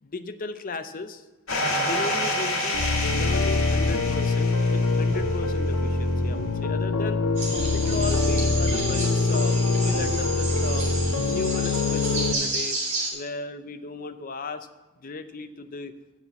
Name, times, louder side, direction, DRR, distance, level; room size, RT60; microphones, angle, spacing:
voice 1, 0.0-1.2 1.8-2.8 3.1-7.2 7.7-11.0 11.2-12.8 13.1-14.7 15.0-15.9, left 3 dB, 40° left, 10 dB, 0.6 m, -35 dB
sound 1, 1.5-5.5, left 1 dB, 70° left, 1.9 m, -29 dB
sound 2, 2.7-12.3, left 3 dB, 85° left, 0.7 m, -24 dB
sound 3, 7.4-13.1, right 2 dB, 35° right, 3.2 m, -31 dB
8.3 x 5.8 x 7.9 m, 1.1 s
head